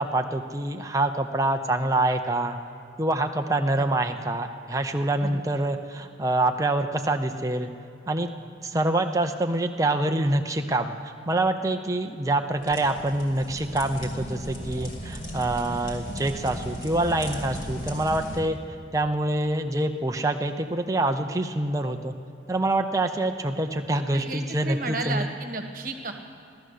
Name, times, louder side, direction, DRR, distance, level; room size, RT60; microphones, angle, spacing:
voice 1, 0.0-2.6 3.0-7.7 8.1-8.3 8.6-18.6 18.9-22.1 22.5-25.3, right 2 dB, 15° right, 5 dB, 0.6 m, -26 dB
voice 2, 8.7-9.0 15.7-15.8 24.1-26.1, right 2 dB, 45° right, 4 dB, 1.4 m, -34 dB
sound 1, 12.5-18.4, right 1 dB, 45° left, 2.4 m, -36 dB
16.5 x 12.5 x 6.5 m, 2.7 s
head